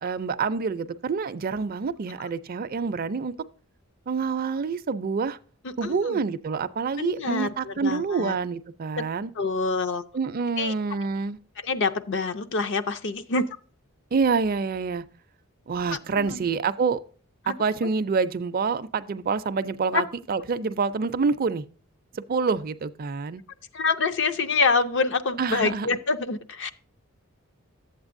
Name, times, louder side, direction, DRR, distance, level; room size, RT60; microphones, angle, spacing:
voice 1, 0.0-3.3 4.1-5.4 5.8-9.3 10.1-11.4 14.1-15.0 15.7-17.0 17.5-21.6 22.1-23.4 25.4-25.9, right 5 dB, 45° right, 0.4 m, -27 dB
voice 2, 5.8-6.2 7.0-8.4 9.0-9.1 9.4-10.0 10.6-10.7 11.6-13.4 15.9-16.4 17.4-17.5 19.9-20.0 23.7-26.7, left 4 dB, 60° left, 0.6 m, -26 dB
11.0 x 8.0 x 2.6 m
head